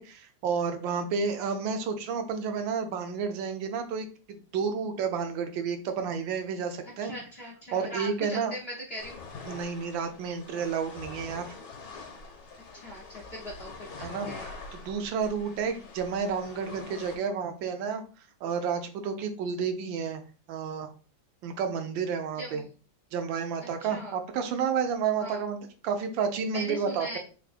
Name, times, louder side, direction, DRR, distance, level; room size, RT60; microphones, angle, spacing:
voice 1, 0.0-7.1 7.7-8.5 9.5-11.6 14.0-18.0 18.4-20.2 20.5-20.9 21.4-22.6 23.1-27.2, right 6 dB, 90° right, 6 dB, 1.4 m, -31 dB
voice 2, 6.8-9.2 12.7-14.5 22.4-22.7 23.8-24.2 25.2-25.5 26.5-27.2, right 1 dB, 55° left, -4 dB, 0.7 m, -40 dB
sound 1, 9.0-17.2, left 4 dB, 70° left, 1.5 m, -44 dB
3.7 x 3.4 x 2.4 m, 0.37 s
omnidirectional pair, 2.0 m